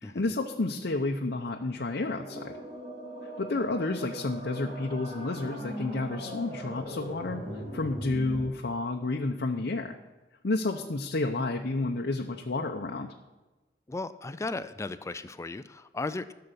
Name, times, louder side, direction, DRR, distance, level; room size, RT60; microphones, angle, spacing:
voice 1, 0.0-2.6 3.2-10.0 10.4-13.1, left 2 dB, 65° left, 2 dB, 0.7 m, -31 dB
sound 1, 2.0-8.5, equal, 40° right, 2.6 m, -40 dB
voice 2, 13.9-16.3, left 3 dB, 15° left, 13 dB, 0.3 m, -36 dB
13.0 x 6.8 x 6.8 m, 1.1 s
head